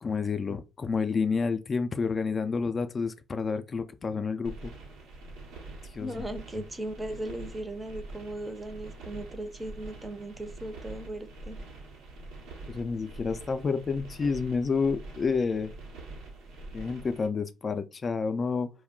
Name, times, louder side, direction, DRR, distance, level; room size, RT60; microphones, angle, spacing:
voice 1, 0.0-4.7 5.9-6.2 12.7-15.7 16.7-18.7, left 5 dB, 40° left, 0.3 m, -29 dB
sound 1, 4.4-17.3, right 2 dB, 80° right, 0.9 m, -45 dB
voice 2, 6.0-11.6, right 1 dB, 20° right, 0.6 m, -37 dB
2.2 x 2.2 x 3.6 m
supercardioid pair, 70°, 0 cm